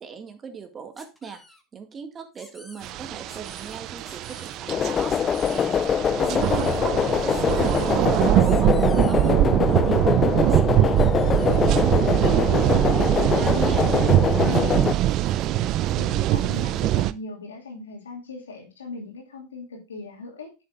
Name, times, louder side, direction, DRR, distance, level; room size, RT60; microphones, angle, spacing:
voice 1, 0.0-1.4 1.7-5.8 6.2-10.2 10.5-13.9 14.2-15.5, right 6 dB, 30° right, 6 dB, 2.0 m, -40 dB
sound 1, 1.0-1.6 2.3-2.9 3.3-3.8 4.0-4.6 5.1-5.7 6.2-6.8 7.3-7.9 8.4-9.4 10.5-10.6 10.9-11.7, left 1 dB, 5° left, 2.4 m, -48 dB
sound 2, 2.8-17.1, right 13 dB, 50° right, 0.5 m, -22 dB
sound 3, 4.7-14.9, left 8 dB, 30° left, 0.4 m, -24 dB
voice 2, 16.0-20.5, left 3 dB, 90° left, 2 dB, 2.6 m, -38 dB
10.5 x 7.3 x 2.5 m, 0.28 s
hypercardioid pair, 90°, 0 cm